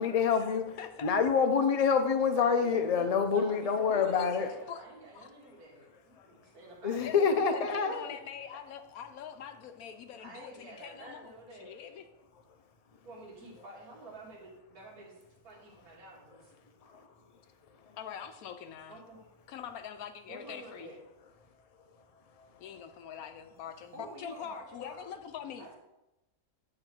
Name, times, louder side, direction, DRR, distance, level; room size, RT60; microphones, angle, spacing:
voice 1, 0.0-0.6 1.0-4.5 6.2-6.3 6.8-8.2 17.8-18.0 22.4-22.5, left 6 dB, 40° left, 0.5 m, -27 dB
voice 2, 0.8-1.1 4.0-4.8 5.1-5.3 7.0-12.1 18.0-19.0 19.5-20.9 22.6-25.7, left 8 dB, 80° left, 1.1 m, -44 dB
voice 3, 2.4-3.1 3.3-7.4 8.5-8.6 10.2-11.8 13.0-15.1 15.4-16.5 18.9-19.2 20.3-21.0 23.9-25.1 25.6-25.8, right 2 dB, 85° right, 2.1 m, -49 dB
8.9 x 3.9 x 6.0 m
omnidirectional pair, 1.5 m